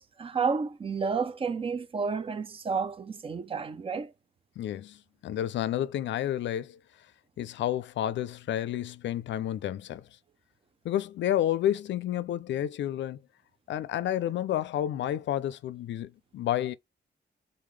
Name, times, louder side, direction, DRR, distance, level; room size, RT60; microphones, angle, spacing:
voice 1, 0.0-4.1, right 5 dB, 30° right, 0.4 m, -31 dB
voice 2, 4.6-6.8 7.4-10.0 10.8-13.2 13.7-16.7, left 11 dB, 85° left, 0.4 m, -30 dB
4.0 x 3.7 x 3.2 m
wide cardioid pair, 170°, 19 cm